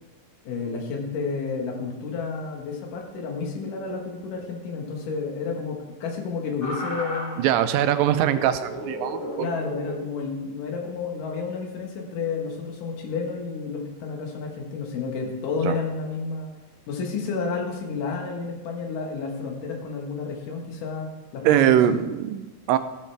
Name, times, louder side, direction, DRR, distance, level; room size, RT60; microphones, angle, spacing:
voice 1, 0.5-7.5 9.3-16.5 16.9-21.8, left 4 dB, 75° left, 1 dB, 3.0 m, -31 dB
sound 1, 6.6-7.5 8.0-10.2 11.4-11.6, left 1 dB, 55° left, 0.6 m, -35 dB
voice 2, 7.4-9.5 15.6-15.8 21.4-22.8, right 11 dB, 85° right, 10 dB, 2.3 m, -22 dB
14.5 x 8.8 x 3.4 m, 1.1 s
omnidirectional pair, 3.9 m